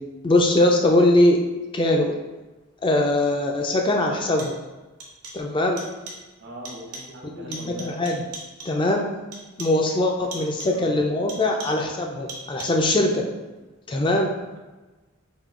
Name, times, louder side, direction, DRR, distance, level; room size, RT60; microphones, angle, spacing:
voice 1, 0.2-1.4 1.7-2.1 2.8-4.5 5.3-5.8 7.4-8.2 8.7-9.1 9.6-13.2 13.9-14.3, left 1 dB, 20° left, 2 dB, 0.3 m, -21 dB
sound 1, 3.1-3.2 4.1-4.7 5.0-5.5 5.8-6.3 6.6-7.2 7.5-8.9 9.3-9.9 10.3-10.9 11.3-11.9 12.3-12.9, right 2 dB, 80° right, 0.9 m, -40 dB
voice 2, 6.4-8.0 10.6-10.9, right 1 dB, 50° right, -1 dB, 0.7 m, -40 dB
3.6 x 2.6 x 3.6 m, 1.2 s
head